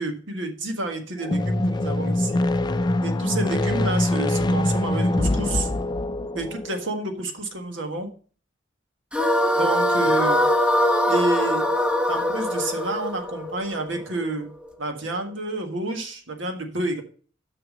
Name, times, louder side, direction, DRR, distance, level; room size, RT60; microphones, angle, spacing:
voice 1, 0.0-2.4 3.0-5.7 6.3-8.1 9.6-10.4 11.1-11.7 12.1-14.5 14.8-17.0, right 2 dB, 85° right, 4 dB, 1.6 m, -29 dB
sound 1, 1.2-6.8, left 1 dB, 25° left, 0.4 m, -24 dB
sound 2, 9.1-14.3, left 1 dB, 5° right, 0.8 m, -22 dB
6.5 x 6.0 x 6.3 m, 0.41 s
head